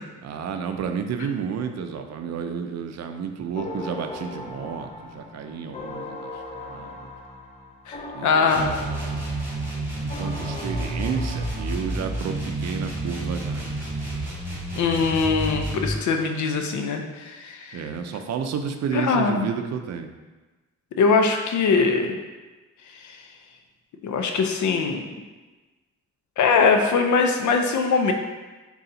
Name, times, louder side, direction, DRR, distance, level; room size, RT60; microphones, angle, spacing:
voice 1, 0.2-7.1 8.1-9.3 10.0-14.1 17.7-20.1, right 7 dB, 65° right, 6 dB, 0.4 m, -31 dB
sound 1, 3.6-12.3, left 2 dB, 20° left, 0.5 m, -39 dB
voice 2, 7.9-8.7 14.8-17.8 18.9-19.5 21.0-22.2 22.9-23.2 24.0-25.0 26.4-28.1, left 4 dB, 75° left, 4 dB, 0.5 m, -22 dB
sound 2, 8.5-16.0, right 1 dB, 10° right, 1.4 m, -30 dB
4.0 x 2.4 x 3.8 m, 1.2 s
cardioid pair, 90°, 29 cm